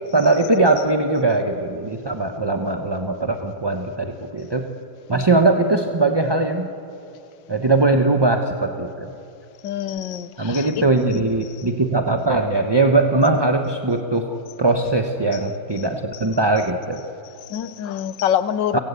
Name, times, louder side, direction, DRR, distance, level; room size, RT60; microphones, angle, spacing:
voice 1, 0.1-4.7 5.1-6.7 7.5-9.1 10.4-17.0 18.7-18.8, right 2 dB, 20° right, 4 dB, 0.7 m, -20 dB
voice 2, 9.6-10.8 11.4-11.7 15.3-15.4 15.8-15.9 16.1-16.2 17.5-18.8, left 10 dB, 75° left, 14 dB, 1.5 m, -26 dB
29.5 x 18.0 x 8.3 m, 2.6 s
omnidirectional pair, 2.0 m